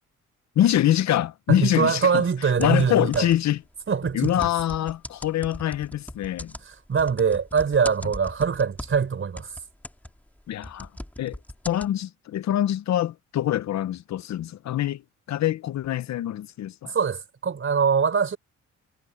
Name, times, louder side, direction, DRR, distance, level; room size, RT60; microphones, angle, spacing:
voice 1, 0.6-3.6 4.1-6.5 10.5-10.9 11.2-11.4 11.7-15.0 15.3-16.9, left 12 dB, 65° left, 0.8 m, -24 dB
voice 2, 1.5-3.3 3.9-4.5 6.7-9.5 16.8-18.4, right 6 dB, 45° right, 4.8 m, -23 dB
sound 1, 2.6-3.6 4.0-9.1 9.4-11.9, left 1 dB, 5° left, 2.5 m, -39 dB
cardioid pair, 90°, 30 cm